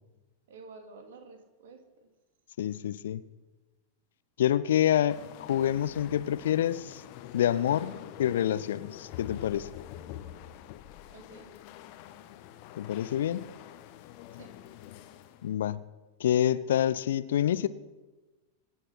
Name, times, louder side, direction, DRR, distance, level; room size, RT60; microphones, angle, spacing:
voice 1, 0.5-1.8 11.1-11.5 14.3-14.5, right 4 dB, 60° right, 2.9 m, -50 dB
voice 2, 2.6-3.2 4.4-7.0 7.3-7.9 8.2-9.7 12.8-13.4 15.4-15.8 16.2-17.7, left 11 dB, 60° left, 0.6 m, -27 dB
sound 1, 5.1-15.6, left 12 dB, 45° left, 1.3 m, -46 dB
25.5 x 9.1 x 5.9 m
figure-of-eight pair, 90°, 0 cm